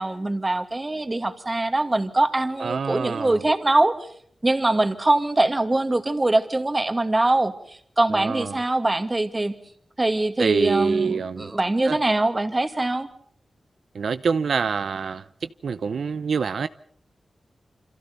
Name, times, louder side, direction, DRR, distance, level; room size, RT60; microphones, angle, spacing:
voice 1, 0.0-4.1 4.4-9.5 10.0-13.1, right 2 dB, 25° right, 2.4 m, -23 dB
voice 2, 2.6-3.4 8.1-8.6 10.4-11.5 11.9-12.0 13.9-16.7, right 5 dB, 80° right, 0.8 m, -26 dB
29.0 x 26.5 x 4.1 m
wide cardioid pair, 120°, 0 cm